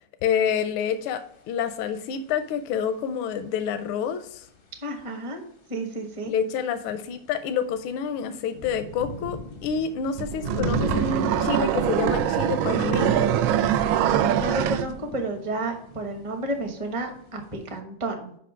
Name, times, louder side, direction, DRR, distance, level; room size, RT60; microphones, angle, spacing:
voice 1, 0.2-4.5 6.3-13.3, left 7 dB, 85° left, 10 dB, 1.5 m, -28 dB
sound 1, 0.9-1.0 6.7-17.7, left 2 dB, 55° left, 0.6 m, -37 dB
voice 2, 4.8-5.4 5.7-6.3 14.2-18.4, right 2 dB, 25° right, 4 dB, 0.8 m, -31 dB
sound 2, 10.2-14.9, right 10 dB, 80° right, 1.3 m, -23 dB
5.8 x 5.5 x 5.0 m, 0.66 s
omnidirectional pair, 2.3 m